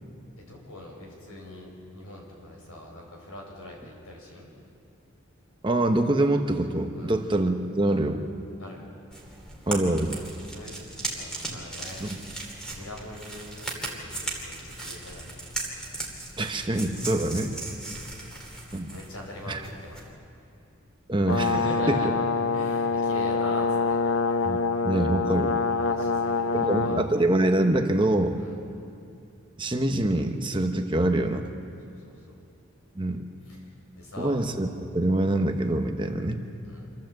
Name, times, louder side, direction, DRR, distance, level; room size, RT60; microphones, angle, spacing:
voice 1, 0.4-4.5 7.0-7.2 8.6-8.9 10.4-10.7 11.0-12.1 12.7-15.3 17.9-18.4 18.9-20.2 21.3-22.1 22.5-24.0 25.8-27.1 28.4-28.6 31.8-32.4 33.4-33.7 34.0-34.4 36.6-36.9, left 1 dB, 90° left, -1 dB, 5.3 m, -42 dB
voice 2, 5.6-8.2 9.7-10.2 12.0-12.2 16.4-17.6 18.7-18.9 19.5-19.6 21.1-21.5 21.9-22.1 24.4-25.5 26.5-28.4 29.6-31.5 33.0-33.2 34.2-36.4, right 1 dB, 20° right, 5 dB, 0.9 m, -25 dB
sound 1, 9.1-20.1, right 2 dB, 5° left, 2.5 m, -37 dB
Brass instrument, 21.3-27.1, left 4 dB, 60° left, 0.8 m, -25 dB
26.5 x 13.0 x 7.7 m, 2.5 s
head